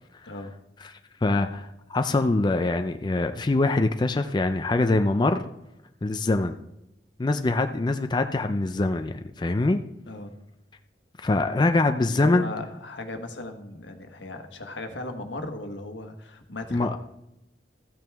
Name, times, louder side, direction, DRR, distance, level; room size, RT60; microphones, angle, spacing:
voice 1, 1.2-5.4 6.0-6.6 7.2-9.8 11.2-12.5 16.7-17.0, left 2 dB, 25° left, 7 dB, 0.4 m, -24 dB
voice 2, 12.0-17.0, left 2 dB, 85° left, 5 dB, 1.3 m, -37 dB
14.0 x 9.0 x 3.5 m, 0.88 s
head